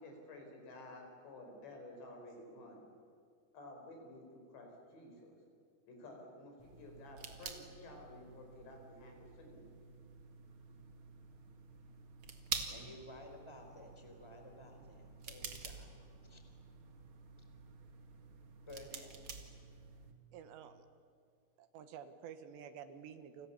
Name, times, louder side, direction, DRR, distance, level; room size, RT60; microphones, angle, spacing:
voice 1, 0.0-2.8 3.5-5.3 5.9-9.7, left 1 dB, 80° left, 2 dB, 7.2 m, -53 dB
sound 1, 6.6-20.1, right 5 dB, 50° right, 1.7 m, -49 dB
voice 2, 12.7-15.9 16.3-16.4 18.6-19.1, left 1 dB, 5° left, 4 dB, 3.2 m, -54 dB
voice 3, 20.3-20.9 21.6-23.5, right 8 dB, 80° right, 10 dB, 3.5 m, -51 dB
30.0 x 26.0 x 7.1 m, 2.2 s
omnidirectional pair, 5.0 m